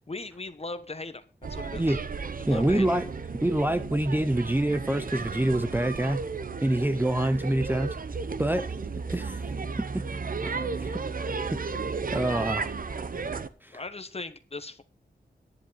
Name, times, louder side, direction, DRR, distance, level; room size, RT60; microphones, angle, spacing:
voice 1, 0.1-1.2 1.5-2.0 2.4-3.0 13.7-14.8, left 3 dB, 35° left, 1.1 m, -38 dB
sound 1, 1.4-13.5, right 4 dB, 50° right, 0.8 m, -34 dB
voice 2, 2.5-3.1 3.4-6.2 6.6-7.9 8.4-8.7 9.1-9.4 9.9-10.0 10.4-11.0 11.5-11.6 12.1-12.7 13.6-13.7, right 1 dB, 10° right, 0.6 m, -26 dB
10.5 x 10.5 x 4.1 m
wide cardioid pair, 110°, 18 cm